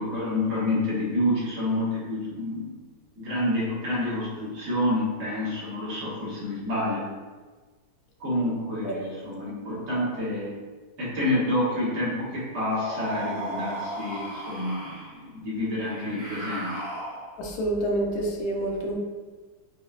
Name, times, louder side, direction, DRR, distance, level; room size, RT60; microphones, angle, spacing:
voice 1, 0.0-2.8 3.2-7.0 8.2-10.5 11.0-16.7, left 1 dB, 65° right, -8 dB, 1.6 m, -28 dB
sound 1, 12.7-15.2 15.8-17.5, right 1 dB, 20° left, 0.5 m, -35 dB
voice 2, 17.4-19.0, right 1 dB, 70° left, 0 dB, 1.1 m, -27 dB
5.3 x 2.2 x 2.3 m, 1.4 s
omnidirectional pair, 1.7 m